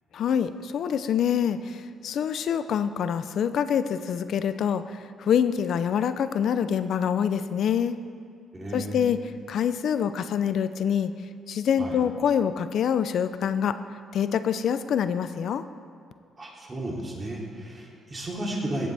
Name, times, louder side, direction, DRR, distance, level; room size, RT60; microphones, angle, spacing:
voice 1, 0.1-8.0 8.7-9.2 9.5-11.1 11.5-13.8 14.1-15.6, left 8 dB, 65° left, 12 dB, 0.4 m, -25 dB
voice 2, 8.5-9.0 11.8-12.0 16.4-18.9, right 1 dB, 25° right, -3 dB, 2.7 m, -33 dB
16.0 x 8.0 x 3.4 m, 2.4 s
cardioid pair, 90°, 0 cm